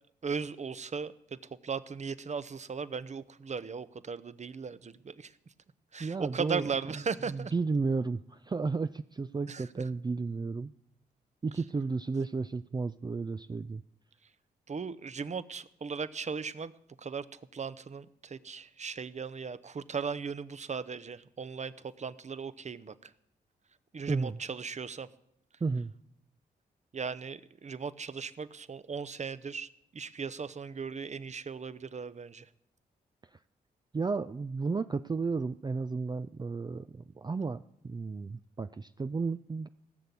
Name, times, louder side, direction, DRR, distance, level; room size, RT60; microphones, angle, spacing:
voice 1, 0.2-5.3 5.9-7.5 9.5-9.8 14.7-16.7 17.0-23.1 23.9-25.1 26.9-32.5, right 5 dB, 40° right, 15 dB, 0.8 m, -37 dB
voice 2, 6.0-6.7 7.3-10.7 11.4-13.8 24.1-24.4 25.6-25.9 33.3-33.4 33.9-39.7, right 4 dB, 25° right, 11 dB, 0.4 m, -33 dB
17.0 x 6.7 x 8.5 m, 0.75 s
supercardioid pair, 45°, 18 cm